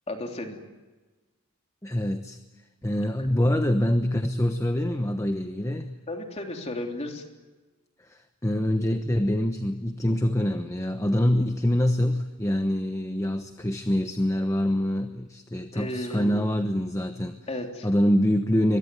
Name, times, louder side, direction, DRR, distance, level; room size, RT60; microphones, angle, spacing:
voice 1, 0.1-0.6 6.1-7.2 15.7-16.5 17.5-17.9, left 1 dB, 30° left, 3 dB, 3.3 m, -34 dB
voice 2, 1.8-2.4 2.8-6.0 8.1-17.4 17.8-18.8, left 1 dB, 15° left, 7 dB, 1.0 m, -25 dB
23.5 x 22.0 x 9.7 m, 1.2 s
head